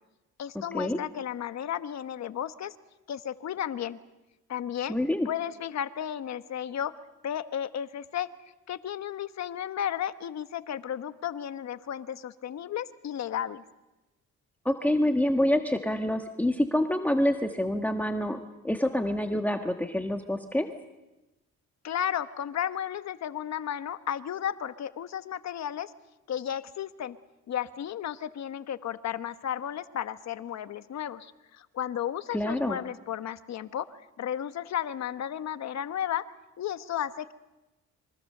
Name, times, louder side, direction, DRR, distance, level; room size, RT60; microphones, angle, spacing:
voice 1, 0.4-2.7 3.1-4.0 4.5-5.0 5.2-8.3 8.7-13.6 21.8-25.9 26.3-27.2 27.5-36.3 36.6-37.3, left 10 dB, 60° left, 11 dB, 1.2 m, -33 dB
voice 2, 4.9-5.3 14.6-18.4 18.6-20.7 32.3-32.8, left 1 dB, 5° left, 4 dB, 1.5 m, -26 dB
27.0 x 24.0 x 6.7 m, 1.0 s
cardioid pair, 90°, 30 cm